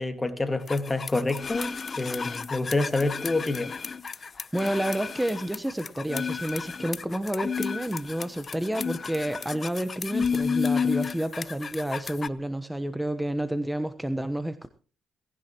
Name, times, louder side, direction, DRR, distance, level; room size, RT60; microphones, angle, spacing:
voice 1, 0.0-3.7, left 2 dB, 20° left, 2.1 m, -27 dB
sound 1, 0.7-12.3, left 6 dB, 40° left, 0.8 m, -32 dB
voice 2, 4.5-14.7, right 1 dB, 5° right, 1.1 m, -30 dB
18.5 x 17.0 x 3.0 m
cardioid pair, 90°, 0 cm